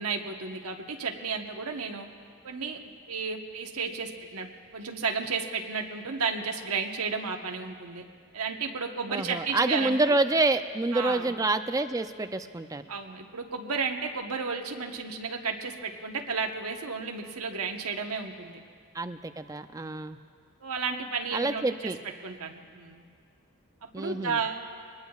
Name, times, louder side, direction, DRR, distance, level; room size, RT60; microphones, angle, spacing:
voice 1, 0.0-2.1 2.4-2.8 3.1-8.0 8.3-10.1 10.9-11.3 12.9-18.6 20.6-21.9 22.2-23.0 23.8-24.6, right 5 dB, 85° right, 3 dB, 1.1 m, -33 dB
voice 2, 9.1-12.9 18.9-20.2 21.3-22.0 23.9-24.4, right 2 dB, 15° right, 9 dB, 0.4 m, -27 dB
24.0 x 20.0 x 2.4 m, 2.1 s
head